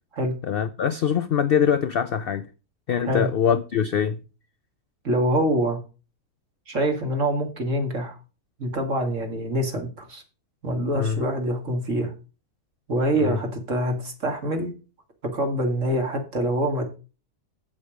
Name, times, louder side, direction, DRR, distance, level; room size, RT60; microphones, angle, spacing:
voice 1, 0.4-2.5 2.9-4.2 11.0-11.3 13.1-13.4, left 8 dB, 75° left, 0.5 m, -23 dB
voice 2, 5.0-5.8 6.7-8.2 8.6-10.2 10.6-12.1 12.9-14.7 15.2-16.8, right 1 dB, 50° right, 2.5 m, -25 dB
8.5 x 7.3 x 5.0 m
omnidirectional pair, 1.7 m